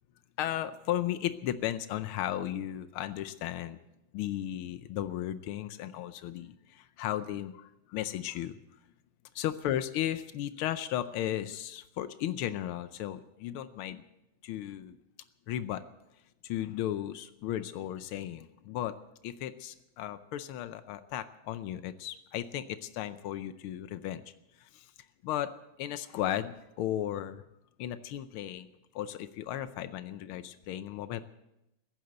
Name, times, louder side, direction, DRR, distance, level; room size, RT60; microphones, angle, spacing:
voice 1, 0.4-3.8 4.1-8.6 9.3-14.0 14.4-15.0 15.5-15.8 16.4-19.0 19.2-24.2 24.6-24.9 25.2-25.5 25.8-27.4 27.8-28.7 28.9-31.2, left 12 dB, 90° left, 12 dB, 1.6 m, -35 dB
15.5 x 11.0 x 8.0 m, 0.89 s
omnidirectional pair, 2.3 m